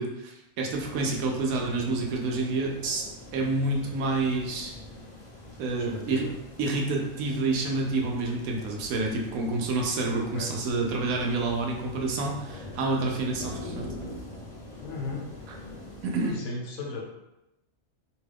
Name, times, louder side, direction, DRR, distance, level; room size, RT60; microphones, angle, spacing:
voice 1, 0.0-3.0 3.3-4.7 5.6-6.3 6.6-13.9 16.0-16.3, right 3 dB, 85° right, 0 dB, 1.0 m, -28 dB
sound 1, 0.7-16.3, left 1 dB, 55° left, 0.3 m, -44 dB
voice 2, 5.8-6.3 10.1-10.5 14.8-15.3 16.2-17.1, left 3 dB, 80° left, 0 dB, 1.1 m, -36 dB
2.9 x 2.3 x 3.3 m, 0.92 s
omnidirectional pair, 1.4 m